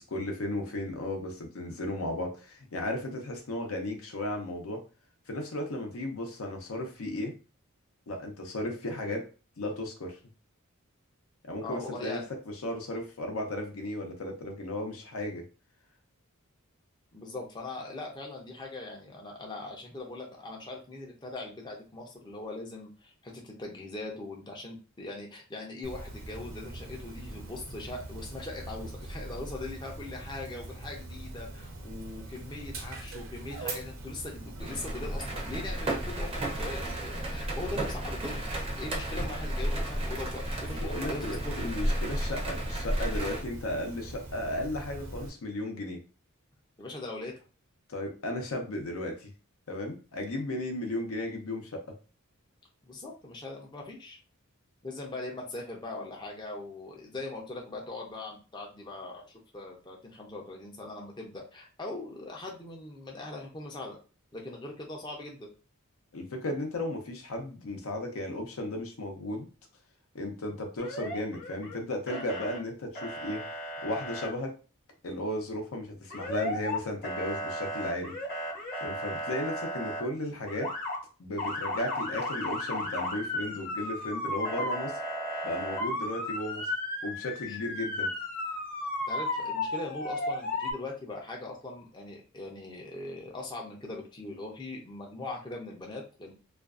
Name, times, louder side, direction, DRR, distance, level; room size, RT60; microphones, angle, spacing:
voice 1, 0.0-4.8 5.3-7.3 8.1-9.3 9.6-10.2 11.4-15.4 40.7-46.0 47.9-49.3 49.7-51.8 66.1-69.5 70.1-73.4 73.8-74.5 75.0-78.2 78.8-80.7 81.2-85.0 85.4-86.7 87.0-88.1, left 1 dB, 75° left, 3 dB, 0.6 m, -35 dB
voice 2, 11.6-12.2 17.1-38.5 38.7-41.7 46.8-47.3 52.8-54.2 54.8-64.0 64.3-65.5 87.5-87.6 89.1-96.3, left 2 dB, 20° left, -1 dB, 0.5 m, -41 dB
Dog, 25.8-45.3, right 2 dB, 65° right, 0.6 m, -42 dB
sound 1, 34.6-43.4, right 1 dB, 25° right, 0.5 m, -33 dB
Motor vehicle (road) / Siren, 70.8-71.8 72.1-72.6 72.9-74.3 76.1-76.8 77.0-80.0 80.5-81.0 81.4-90.7, left 1 dB, 40° left, 0.8 m, -34 dB
2.4 x 2.3 x 2.4 m, 0.34 s
head